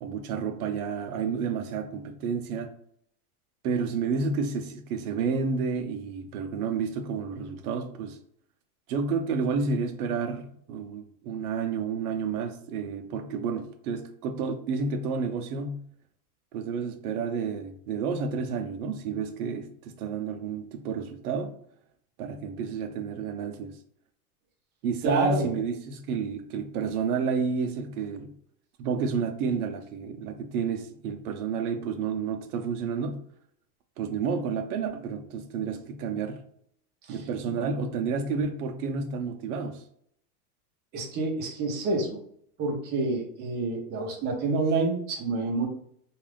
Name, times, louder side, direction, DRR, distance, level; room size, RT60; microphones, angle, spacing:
voice 1, 0.0-2.7 3.6-8.2 8.9-15.8 16.5-21.5 22.2-23.7 24.8-28.3 28.8-33.2 34.0-36.4 37.1-39.8, right 5 dB, 75° right, 0.6 m, -30 dB
voice 2, 25.0-25.5 37.1-37.2 40.9-42.2 42.6-45.7, right 3 dB, 25° right, 0.5 m, -28 dB
2.5 x 2.3 x 3.3 m
supercardioid pair, 145°, 45 cm